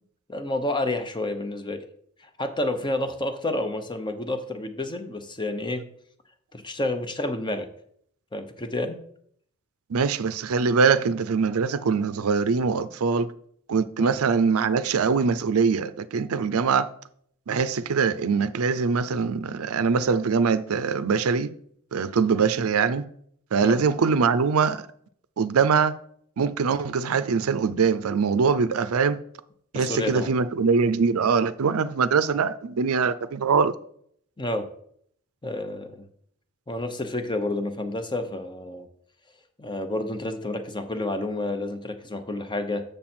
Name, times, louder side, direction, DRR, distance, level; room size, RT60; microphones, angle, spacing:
voice 1, 0.3-1.9 2.4-5.8 6.5-7.7 8.3-9.0 14.0-14.1 23.6-23.8 29.7-30.3 34.4-34.7 35.4-36.0 36.7-38.9 39.6-42.8, left 2 dB, 20° left, 0.8 m, -29 dB
voice 2, 9.9-13.3 13.7-16.9 17.5-21.5 21.9-23.0 23.5-24.9 25.4-25.9 26.4-29.2 29.7-33.7, right 5 dB, 80° right, 0.5 m, -23 dB
7.5 x 6.6 x 4.4 m
head